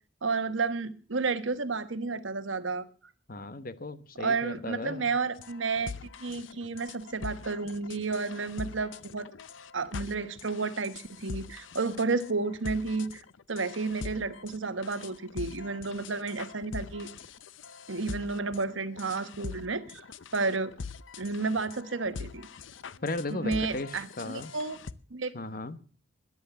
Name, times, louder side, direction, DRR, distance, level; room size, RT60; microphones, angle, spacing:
voice 1, 0.2-2.9 4.2-5.9 6.2-9.3 9.7-13.2 13.5-17.1 17.9-20.0 20.3-20.7 21.2-22.5 23.3-24.8 25.1-25.3, right 4 dB, 85° right, 12 dB, 1.2 m, -31 dB
voice 2, 3.3-5.1 23.0-24.5 25.3-25.8, left 2 dB, 50° left, 13 dB, 1.1 m, -36 dB
sound 1, 5.4-24.9, left 5 dB, 85° left, 0.7 m, -43 dB
13.0 x 10.5 x 7.0 m, 0.41 s
head